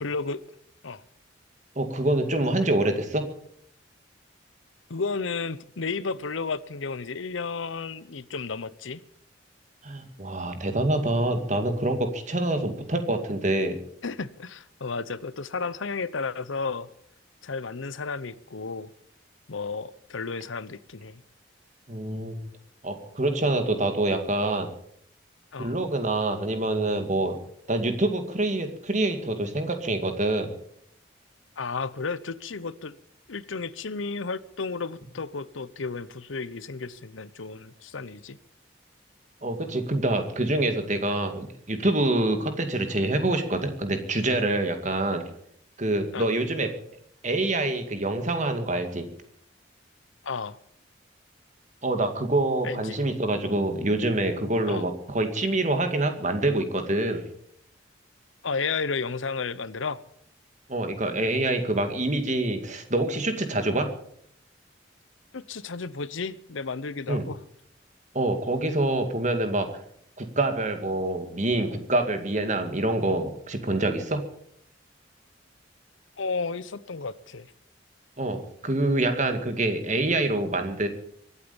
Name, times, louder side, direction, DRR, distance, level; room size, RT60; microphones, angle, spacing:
voice 1, 0.0-0.4 0.8-1.0 4.9-9.0 14.0-16.9 17.4-18.9 19.5-21.2 25.5-25.8 31.6-33.0 33.3-38.4 46.1-46.3 50.2-50.6 52.6-53.0 54.7-54.8 58.4-60.0 65.3-67.4 76.2-77.5, left 4 dB, 85° left, 17 dB, 0.8 m, -33 dB
voice 2, 1.8-3.3 9.8-13.8 21.9-22.3 22.8-24.7 25.6-27.4 27.7-30.5 39.4-45.2 45.8-46.7 47.2-49.1 51.8-57.2 60.7-63.9 67.1-67.3 68.1-69.7 70.2-74.2 78.2-80.9, right 2 dB, 40° right, 7 dB, 2.2 m, -26 dB
24.0 x 8.5 x 7.1 m, 0.70 s
head